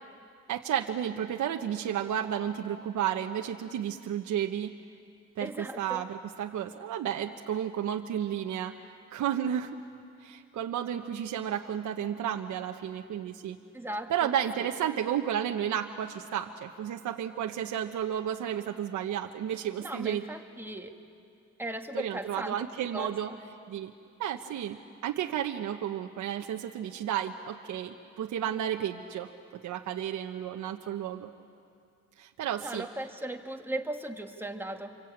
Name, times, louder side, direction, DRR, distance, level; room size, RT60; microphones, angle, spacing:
voice 1, 0.5-4.8 5.4-8.8 9.1-9.8 10.2-13.6 14.1-20.3 21.9-23.3 23.7-23.9 24.2-24.8 25.0-29.3 29.6-31.3 32.2-32.9, right 10 dB, 75° right, 3 dB, 1.2 m, -32 dB
voice 2, 5.4-6.1 13.7-14.3 14.6-14.7 19.8-21.0 21.6-22.6 22.9-23.4 32.6-35.0, right 1 dB, 5° right, 3 dB, 2.1 m, -37 dB
27.0 x 24.0 x 8.8 m, 2.4 s
cardioid pair, 90°, 30 cm